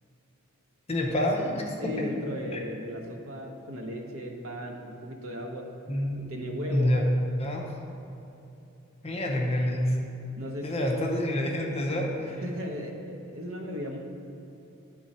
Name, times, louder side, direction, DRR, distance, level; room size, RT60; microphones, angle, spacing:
voice 1, 0.9-2.1 2.5-2.6 5.9-6.2 6.7-7.0 7.4-7.7 9.0-10.0 10.6-12.4, left 1 dB, 30° left, 0 dB, 0.6 m, -27 dB
voice 2, 1.8-5.7 6.1-6.9 10.4-11.2 12.4-14.0, equal, 65° right, 1 dB, 0.8 m, -36 dB
8.9 x 3.7 x 4.2 m, 2.8 s
head